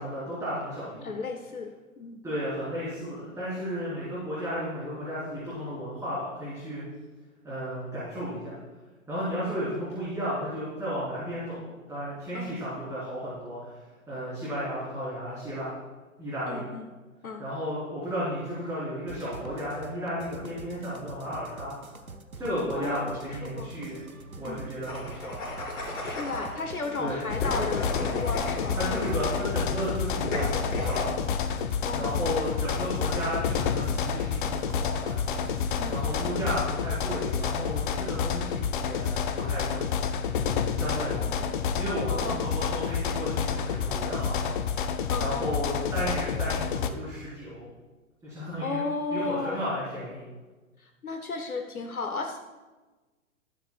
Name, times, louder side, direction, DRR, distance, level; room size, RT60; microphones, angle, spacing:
voice 1, 0.0-1.2 2.2-6.8 7.4-8.6 9.1-13.8 14.1-15.8 16.2-16.7 17.4-21.8 22.4-24.0 24.3-25.4 27.0-27.2 28.7-30.5 30.7-31.2 31.9-35.2 35.9-39.8 40.7-44.6 45.2-47.7 48.2-48.8 49.1-50.2, equal, 5° right, -11 dB, 3.6 m, -33 dB
voice 2, 1.0-2.2 12.3-12.5 16.5-16.8 17.2-17.4 22.8-23.7 24.4-24.6 26.0-28.8 31.8-32.4 35.8-36.3 40.5-40.6 40.9-41.4 42.1-42.5 45.1-45.5 48.6-49.6 50.8-52.4, left 3 dB, 85° left, 4 dB, 0.9 m, -34 dB
sound 1, 19.1-36.2, right 3 dB, 85° right, 1.0 m, -44 dB
sound 2, 24.8-26.6 27.4-29.5 30.3-31.1, left 2 dB, 60° left, 3.2 m, -34 dB
sound 3, 27.3-46.9, left 6 dB, 35° left, 0.6 m, -29 dB
19.0 x 7.4 x 2.4 m, 1.2 s
figure-of-eight pair, 115°, 42 cm